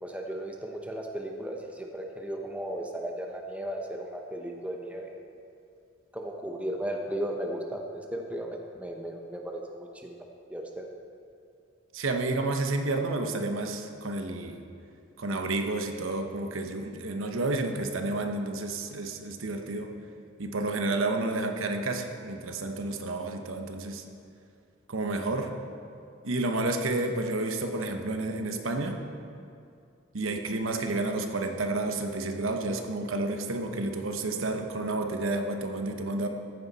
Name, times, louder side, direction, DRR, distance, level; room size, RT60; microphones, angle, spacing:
voice 1, 0.0-5.1 6.1-10.9, right 1 dB, 5° right, 1 dB, 0.7 m, -36 dB
voice 2, 11.9-14.6 15.2-19.9 20.4-24.0 24.9-25.5 26.2-29.0 30.1-36.3, right 2 dB, 85° right, 5 dB, 1.0 m, -30 dB
14.5 x 9.6 x 4.1 m, 2.4 s
head